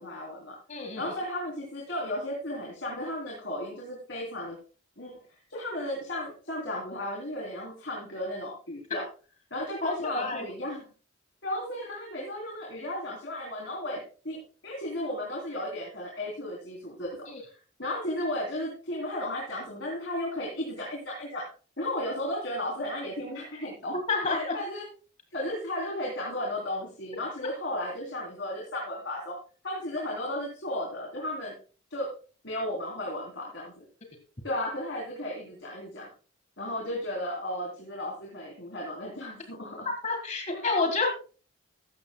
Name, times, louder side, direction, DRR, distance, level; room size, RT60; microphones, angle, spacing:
voice 1, 0.0-0.6 1.0-4.6 5.0-5.2 5.5-9.0 9.5-10.8 11.4-17.3 17.8-21.5 21.8-24.0 24.3-24.9 25.3-29.4 29.6-31.5 31.9-32.1 32.4-33.8 34.4-36.1 36.6-39.9 40.5-40.7, left 1 dB, 65° left, -1 dB, 3.4 m, -34 dB
voice 2, 0.7-1.1 9.8-10.5 17.3-17.4 24.1-24.6 39.9-41.1, left 3 dB, 35° left, 4 dB, 1.7 m, -29 dB
15.5 x 13.0 x 2.2 m, 0.37 s
head